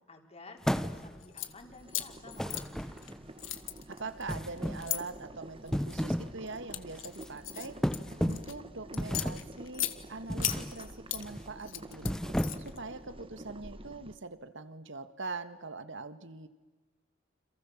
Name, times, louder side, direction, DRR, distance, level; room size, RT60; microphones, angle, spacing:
voice 1, 0.1-3.0, left 3 dB, 30° left, 4 dB, 4.2 m, -53 dB
sound 1, 0.6-1.3 2.4-3.3 4.3-5.0 5.6-6.4 6.7-7.0 7.8-8.6 9.0-9.5 10.3-10.8 11.1-11.4 11.9-12.8, equal, 5° left, 1.1 m, -33 dB
sound 2, 1.2-1.5 1.9-3.1 3.4-5.0 5.7-6.0 6.5-8.5 8.9-10.0 10.4-11.2 11.6-12.8, left 14 dB, 65° left, 1.7 m, -36 dB
Boiling, 1.4-14.1, right 1 dB, 25° right, 1.4 m, -49 dB
voice 2, 3.9-7.8 8.2-12.2 12.6-16.5, right 3 dB, 65° right, 12 dB, 1.7 m, -43 dB
29.0 x 27.0 x 7.4 m, 1.2 s
head